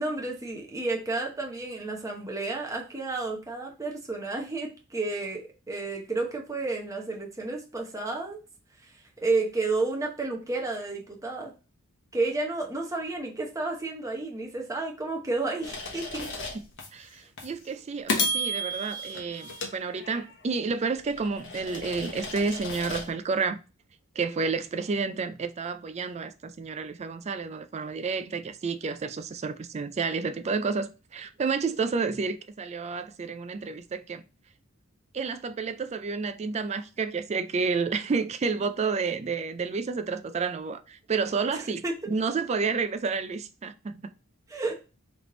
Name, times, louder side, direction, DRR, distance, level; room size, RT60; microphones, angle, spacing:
voice 1, 0.0-8.4 9.2-11.5 12.1-16.3 41.5-41.9 44.5-44.8, right 3 dB, 15° right, 0.9 m, -31 dB
sound 1, 15.6-16.9 17.4-17.5 18.1-20.5 20.9-23.1, left 1 dB, 60° left, 1.0 m, -33 dB
voice 2, 16.9-23.6 24.2-34.2 35.1-44.0, right 4 dB, 30° right, 0.3 m, -30 dB
3.5 x 3.1 x 3.8 m
head